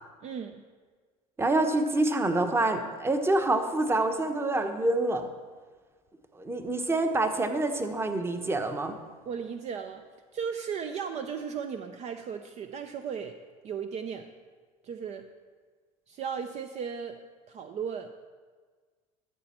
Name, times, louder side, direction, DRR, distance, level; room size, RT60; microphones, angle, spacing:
voice 1, 0.2-0.6 9.2-10.0 10.3-13.3 13.6-14.3 14.8-15.3 16.1-17.2 17.5-18.1, right 7 dB, 40° right, 7 dB, 0.6 m, -36 dB
voice 2, 1.4-5.3 6.3-9.0, right 2 dB, 15° right, 7 dB, 1.0 m, -26 dB
13.0 x 6.8 x 4.4 m, 1.5 s
supercardioid pair, 90°, 17 cm